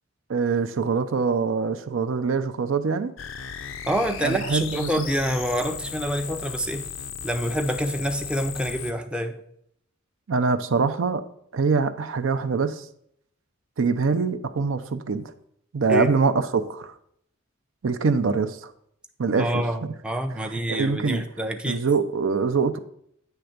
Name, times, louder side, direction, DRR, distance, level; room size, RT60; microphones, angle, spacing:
voice 1, 0.3-3.1 4.2-5.0 10.3-11.2 11.5-12.9 13.8-15.2 15.7-16.9 17.8-18.7 19.2-19.6 20.7-21.2 21.7-22.8, right 4 dB, 65° right, 0.5 m, -24 dB
sound 1, 3.2-8.9, left 8 dB, 65° left, 0.5 m, -36 dB
voice 2, 3.9-6.8 7.2-9.4 15.9-16.1 19.4-21.8, equal, 5° right, 0.5 m, -27 dB
8.9 x 3.4 x 6.5 m
head